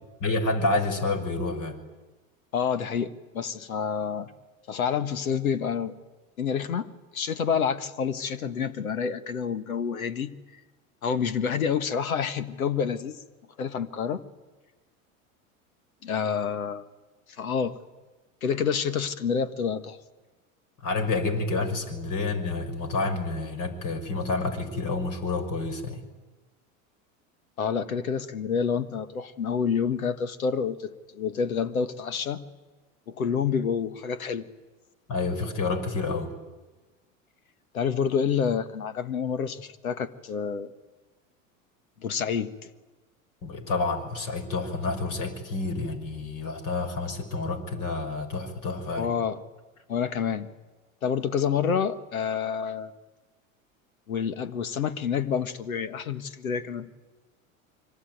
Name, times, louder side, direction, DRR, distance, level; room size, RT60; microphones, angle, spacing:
voice 1, 0.2-1.8 20.8-26.0 35.1-36.3 43.4-49.1, left 3 dB, 50° left, 9 dB, 5.7 m, -29 dB
voice 2, 2.5-4.3 4.7-6.0 6.4-6.9 7.1-10.3 11.0-13.2 13.6-14.2 16.0-16.8 17.4-17.8 18.4-20.0 27.6-32.4 33.1-34.5 37.7-40.7 42.0-42.7 49.0-49.4 49.9-50.5 51.0-52.9 54.1-56.9, left 7 dB, 90° left, 14 dB, 1.5 m, -28 dB
25.5 x 24.0 x 9.3 m, 1.2 s
hypercardioid pair, 90°, 41 cm